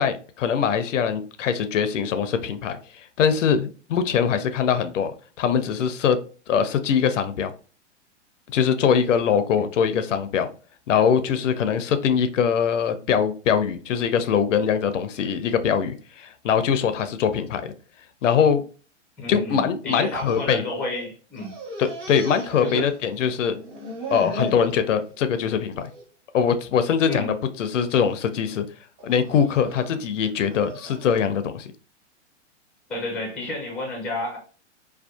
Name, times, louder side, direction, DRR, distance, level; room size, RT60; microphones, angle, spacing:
voice 1, 0.0-6.2 6.5-7.5 8.5-10.5 10.9-17.7 18.2-18.6 19.3-20.6 21.8-23.6 24.1-25.9 26.3-28.7 29.0-31.7, left 7 dB, 85° left, 0.5 m, -22 dB
voice 2, 19.2-21.5 22.6-22.9 27.1-27.3 32.9-34.4, left 2 dB, 5° left, 0.4 m, -30 dB
sound 1, 20.0-21.1 21.3-23.2 23.5-24.7 25.1-25.5 25.8-26.0 26.9-27.3 27.8-28.2 29.0-31.2, equal, 35° right, 0.9 m, -36 dB
2.6 x 2.2 x 2.2 m
hypercardioid pair, 130°, 37 cm